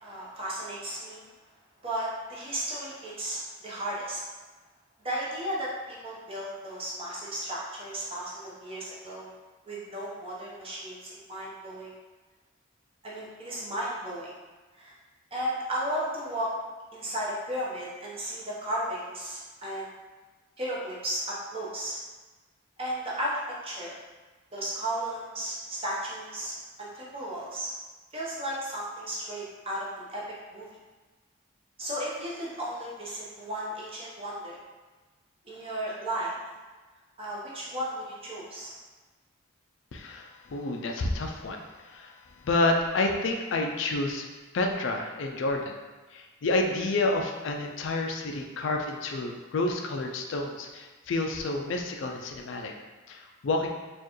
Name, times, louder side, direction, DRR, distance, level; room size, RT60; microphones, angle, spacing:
voice 1, 0.0-1.3 1.8-4.2 5.0-9.3 9.7-11.9 13.0-14.3 14.8-15.0 15.3-16.5 16.9-19.9 20.6-22.0 22.8-23.9 24.5-27.7 28.1-30.2 30.5-30.7 31.8-34.6 35.4-36.3 37.2-38.7, right 1 dB, 25° right, -6 dB, 0.8 m, -34 dB
voice 2, 39.9-42.2 42.4-44.3 44.5-45.8 46.1-52.7 53.1-53.7, left 2 dB, 60° left, 3 dB, 0.4 m, -29 dB
4.4 x 2.4 x 3.0 m, 1.3 s
head